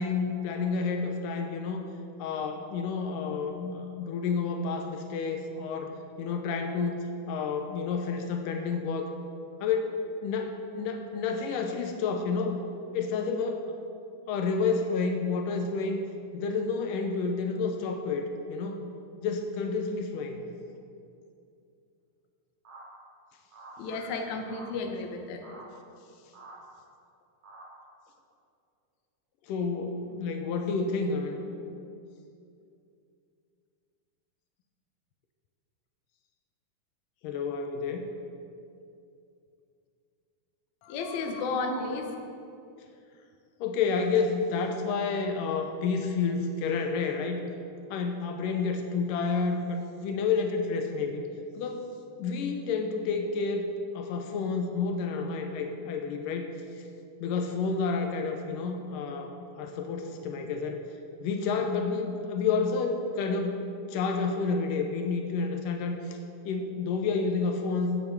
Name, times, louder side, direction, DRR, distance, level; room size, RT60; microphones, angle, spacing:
voice 1, 0.0-1.8 2.2-5.9 6.2-9.1 9.6-10.0 10.2-12.6 12.9-13.8 14.3-16.0 16.3-18.8 19.2-20.4 29.5-31.4 37.2-38.1 43.6-47.4 47.9-51.3 51.6-51.9 52.2-53.7 53.9-56.5 56.8-56.9 57.2-60.8 61.2-63.6 63.9-66.2 66.4-67.9, left 4 dB, 85° left, 5 dB, 2.5 m, -30 dB
sound 1, 22.6-22.8 23.5-23.8 24.4-24.7 25.4-25.6 26.3-26.6 27.4-27.7, right 3 dB, 65° right, 4.1 m, -47 dB
voice 2, 23.8-25.4 40.8-42.1, left 3 dB, 70° left, 3 dB, 2.3 m, -33 dB
15.0 x 9.1 x 4.7 m, 2.5 s
omnidirectional pair, 3.7 m